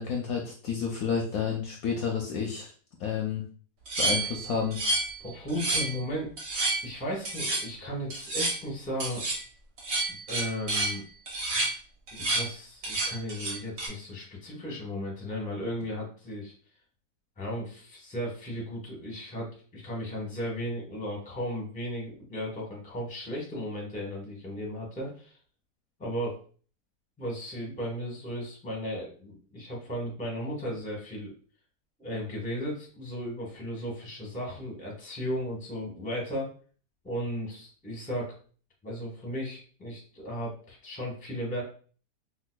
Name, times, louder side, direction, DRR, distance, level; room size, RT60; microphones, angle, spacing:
voice 1, 0.0-2.7 3.0-3.4 4.0-4.8, left 6 dB, 70° left, 1 dB, 0.9 m, -30 dB
sound 1, 3.9-5.2 5.5-6.0 6.4-6.8 7.3-7.7 8.1-8.6 9.0-9.4 9.8-11.0 11.3-11.7 12.1-12.5 12.8-13.9, right 2 dB, 85° right, 1.7 m, -29 dB
voice 2, 5.2-6.3 6.8-9.2 10.1-11.1 12.1-16.5 17.4-25.3 26.0-26.4 27.2-31.3 32.0-36.5 37.0-38.3 38.8-41.6, equal, 10° left, -2 dB, 0.6 m, -35 dB
5.1 x 2.2 x 2.2 m, 0.43 s
omnidirectional pair, 1.8 m